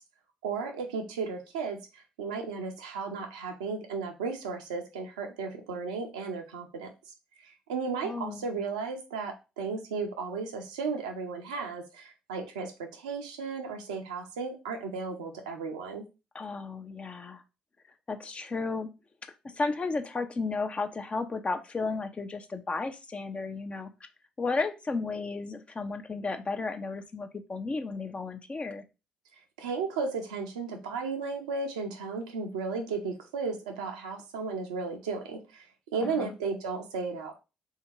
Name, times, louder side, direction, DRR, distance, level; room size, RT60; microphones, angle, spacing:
voice 1, 0.4-6.9 7.4-16.0 29.6-35.7 35.9-37.4, right 4 dB, 80° right, 3 dB, 0.7 m, -34 dB
voice 2, 8.0-8.5 16.3-17.4 18.1-18.9 19.5-23.9 24.4-28.8 36.0-36.3, left 3 dB, 30° left, 7 dB, 0.7 m, -33 dB
3.5 x 2.8 x 4.5 m, 0.29 s
figure-of-eight pair, 45°, 4 cm